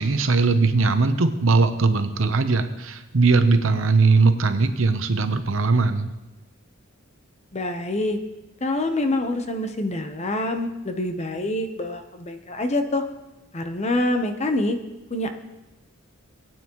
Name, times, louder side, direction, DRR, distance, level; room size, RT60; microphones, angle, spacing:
voice 1, 0.0-6.1, right 3 dB, 75° right, 9 dB, 0.8 m, -20 dB
voice 2, 7.5-8.2 8.6-13.0 13.5-14.8 15.1-15.3, left 1 dB, 35° left, 7 dB, 0.8 m, -26 dB
19.0 x 9.1 x 3.1 m, 1.0 s
head